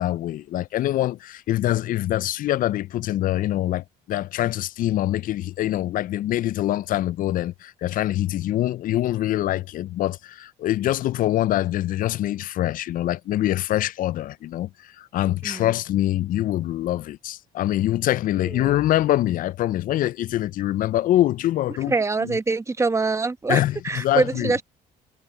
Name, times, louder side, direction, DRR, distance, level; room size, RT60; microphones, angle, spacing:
voice 1, 0.0-21.9 22.2-22.4 23.5-24.5, left 14 dB, 55° left, 0.4 m, -24 dB
voice 2, 21.9-24.6, right 3 dB, 15° right, 1.0 m, -24 dB
cardioid pair, 110°, 17 cm